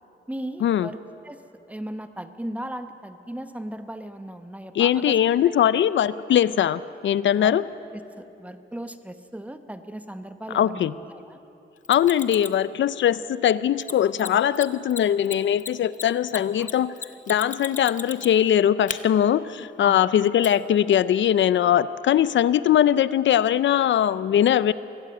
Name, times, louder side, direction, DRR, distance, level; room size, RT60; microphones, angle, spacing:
voice 1, 0.3-1.4 1.7-5.2 5.4-5.5 7.4-7.6 7.9-11.4 16.3-16.7 19.8-20.1, right 1 dB, 5° right, 9 dB, 0.9 m, -37 dB
voice 2, 4.8-7.6 10.5-10.9 11.9-16.9 17.3-24.7, left 10 dB, 75° left, 17 dB, 0.5 m, -21 dB
Mechanisms, 11.8-12.6 13.8-13.9 14.2-14.3 14.5-14.6 14.9-18.5 18.9-19.0 20.4-20.5, left 6 dB, 40° left, 0.8 m, -34 dB
24.0 x 16.5 x 7.8 m, 2.8 s
wide cardioid pair, 145°, 20 cm